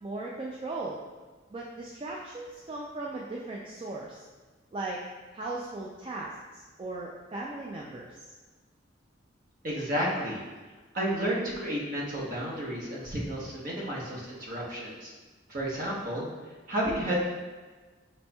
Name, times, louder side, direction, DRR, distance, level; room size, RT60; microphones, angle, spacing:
voice 1, 0.0-1.0 1.5-4.2 4.7-5.0 5.3-8.3, right 2 dB, 25° right, -3 dB, 0.3 m, -37 dB
voice 2, 9.6-10.4 10.9-15.1 15.5-16.3 16.7-17.3, equal, 45° right, -4 dB, 1.0 m, -31 dB
5.2 x 4.2 x 2.2 m, 1.3 s
head